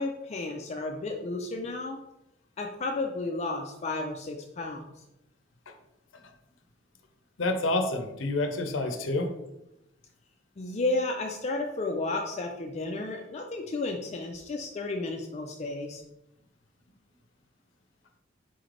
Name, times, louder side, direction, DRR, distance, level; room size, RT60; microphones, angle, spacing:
voice 1, 0.0-2.0 2.6-4.8 10.6-16.0, left 2 dB, 35° left, 2 dB, 0.4 m, -32 dB
voice 2, 7.4-9.3, left 2 dB, 85° left, 5 dB, 0.6 m, -28 dB
4.2 x 3.2 x 3.8 m, 0.88 s
head